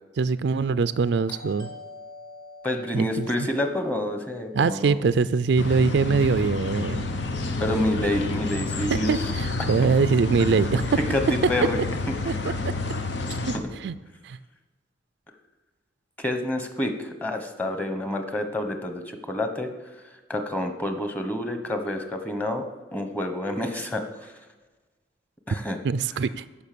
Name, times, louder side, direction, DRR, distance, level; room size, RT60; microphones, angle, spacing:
voice 1, 0.2-1.7 2.9-3.3 4.5-7.1 8.9-10.8 12.3-12.4 13.8-13.9 14.2-14.4 25.8-26.4, right 4 dB, 65° right, 14 dB, 0.4 m, -23 dB
Doorbell, 1.3-5.9, left 2 dB, 25° left, 2.4 m, -46 dB
voice 2, 2.6-5.0 7.6-9.1 11.1-11.8 16.2-19.7 20.3-22.6 22.9-24.3 25.5-25.8, left 1 dB, 10° left, 6 dB, 1.0 m, -28 dB
sound 1, 5.6-13.6, left 3 dB, 75° left, 1.0 m, -29 dB
13.5 x 5.6 x 6.8 m, 1.3 s
head